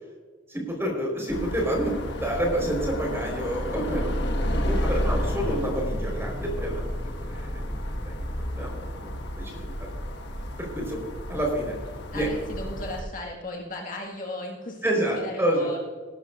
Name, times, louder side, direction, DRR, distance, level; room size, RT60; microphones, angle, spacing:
voice 1, 0.5-1.9 2.2-4.1 4.4-8.2 8.5-9.9 10.6-11.0 11.3-11.8 12.1-12.3 14.8-15.7, right 1 dB, 15° right, -1 dB, 4.5 m, -29 dB
sound 1, 1.3-13.0, equal, 60° left, 1.6 m, -31 dB
voice 2, 12.1-15.8, left 1 dB, 45° left, -1 dB, 1.8 m, -36 dB
19.5 x 12.0 x 2.6 m, 1.5 s
head